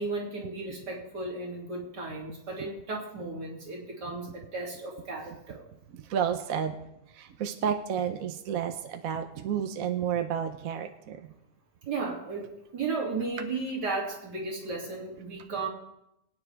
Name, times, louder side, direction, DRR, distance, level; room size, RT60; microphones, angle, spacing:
voice 1, 0.0-5.6 11.9-15.7, right 3 dB, 80° right, -3 dB, 3.4 m, -34 dB
voice 2, 5.9-6.8 7.1-11.3, right 8 dB, 60° right, 6 dB, 1.2 m, -31 dB
22.0 x 9.5 x 3.5 m, 0.83 s
omnidirectional pair, 1.8 m